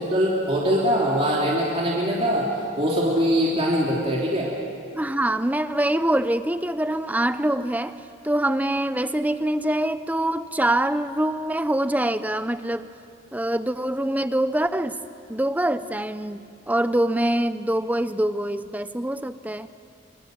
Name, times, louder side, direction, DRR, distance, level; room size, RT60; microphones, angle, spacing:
voice 1, 0.0-2.5 2.8-4.5, equal, 30° right, -4 dB, 3.1 m, -22 dB
voice 2, 4.9-8.0 8.2-12.9 13.3-15.0 15.3-16.4 16.7-19.7, right 1 dB, 10° right, 12 dB, 0.6 m, -24 dB
25.5 x 25.5 x 7.8 m, 2.4 s
head